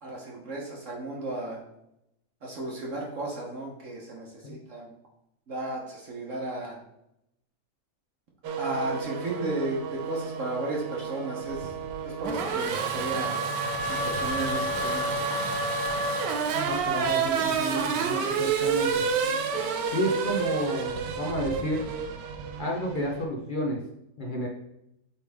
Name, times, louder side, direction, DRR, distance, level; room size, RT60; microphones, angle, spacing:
voice 1, 0.0-1.6 2.4-4.9 5.5-6.8 8.6-11.7 12.0-13.4 13.9-15.1, right 2 dB, 50° right, -2 dB, 1.3 m, -34 dB
Race car auto racing / Accelerating revving vroom, 8.4-23.2, right 5 dB, 85° right, 1.4 m, -29 dB
voice 2, 16.5-19.0 19.9-21.9 22.6-23.8 24.2-24.5, equal, 45° left, -1 dB, 0.7 m, -31 dB
8.5 x 3.4 x 3.5 m, 0.83 s
omnidirectional pair, 1.8 m